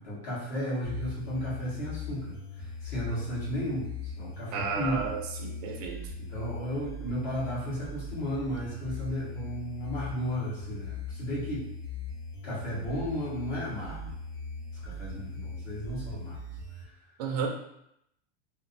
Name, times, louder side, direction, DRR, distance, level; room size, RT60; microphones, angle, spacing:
voice 1, 0.0-5.1 6.2-11.6 12.4-14.1 14.7-16.4 16.7-16.9, equal, 45° left, -8 dB, 1.3 m, -34 dB
sound 1, 0.8-16.8, left 3 dB, 85° left, 0.8 m, -40 dB
voice 2, 4.5-6.0 17.2-17.5, right 6 dB, 40° right, 1 dB, 0.4 m, -32 dB
2.9 x 2.0 x 2.5 m, 0.79 s
supercardioid pair, 165°, 33 cm